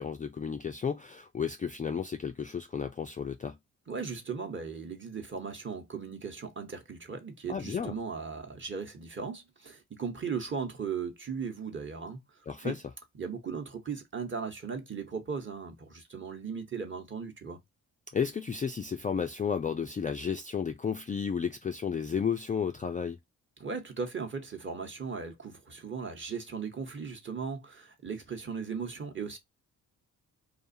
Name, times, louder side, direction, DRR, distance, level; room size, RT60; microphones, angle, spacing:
voice 1, 0.0-3.6 7.5-8.0 12.5-12.8 18.1-23.2, left 6 dB, 20° left, 0.3 m, -32 dB
voice 2, 3.9-12.2 12.6-12.7 13.2-17.6 23.6-29.4, right 5 dB, 30° right, 1.0 m, -37 dB
2.4 x 2.4 x 2.6 m
supercardioid pair, 50°, 39 cm